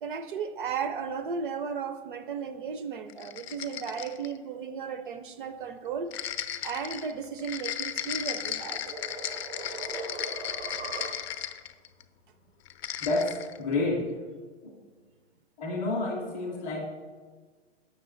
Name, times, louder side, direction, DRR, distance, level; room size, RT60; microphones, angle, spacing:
voice 1, 0.0-6.1 6.6-8.8 11.0-11.1, right 6 dB, 50° right, 10 dB, 0.5 m, -35 dB
sound 1, 3.1-4.4 6.1-12.0 12.7-13.6, left 10 dB, 65° left, 0.5 m, -35 dB
sound 2, 7.8-11.6, right 4 dB, 90° right, 0.9 m, -41 dB
voice 2, 13.0-14.1 14.6-14.7 15.6-16.8, left 2 dB, 15° left, -2 dB, 0.5 m, -29 dB
7.1 x 6.2 x 3.7 m, 1.4 s
hypercardioid pair, 160°, 33 cm